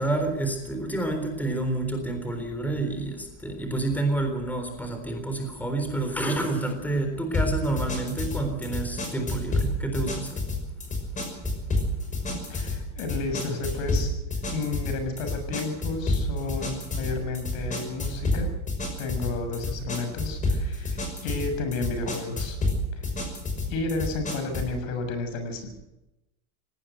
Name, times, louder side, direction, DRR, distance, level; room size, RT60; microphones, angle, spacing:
voice 1, 0.0-10.4, right 2 dB, 5° left, 5 dB, 3.8 m, -29 dB
sound 1, 7.3-24.8, left 2 dB, 20° left, 6.0 m, -29 dB
voice 2, 12.3-14.1 14.5-18.5 19.0-22.6 22.9-23.0 23.7-25.7, left 3 dB, 80° left, 7 dB, 6.8 m, -32 dB
19.0 x 18.0 x 8.0 m, 0.94 s
supercardioid pair, 145°, 39 cm